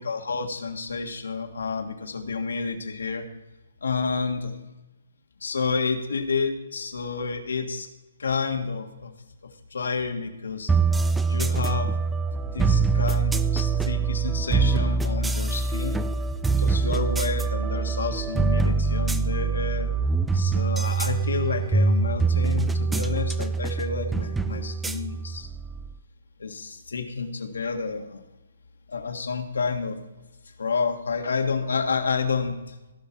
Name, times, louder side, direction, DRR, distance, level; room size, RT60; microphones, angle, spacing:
voice 1, 0.0-3.2 3.8-4.4 5.4-7.9 8.2-9.1 9.7-10.7 11.3-11.9 12.5-16.0 16.6-19.9 20.3-25.5 26.4-28.2 28.9-30.0 30.6-32.7, left 5 dB, 85° left, 5 dB, 1.7 m, -29 dB
sound 1, 10.7-25.9, right 4 dB, 5° right, 0.3 m, -24 dB
17.0 x 5.7 x 4.6 m, 1.1 s
hypercardioid pair, 160°, 0 cm